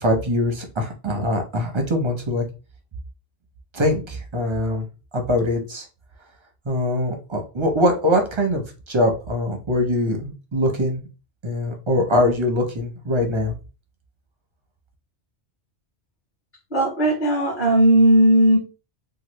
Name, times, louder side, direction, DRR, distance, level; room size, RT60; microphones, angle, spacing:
voice 1, 0.0-2.4 3.7-4.9 5.1-5.8 6.7-11.0 11.4-13.5, left 1 dB, 35° right, 3 dB, 0.5 m, -22 dB
voice 2, 16.7-18.6, right 1 dB, 40° left, -3 dB, 1.2 m, -16 dB
3.0 x 2.3 x 3.0 m, 0.32 s
omnidirectional pair, 1.2 m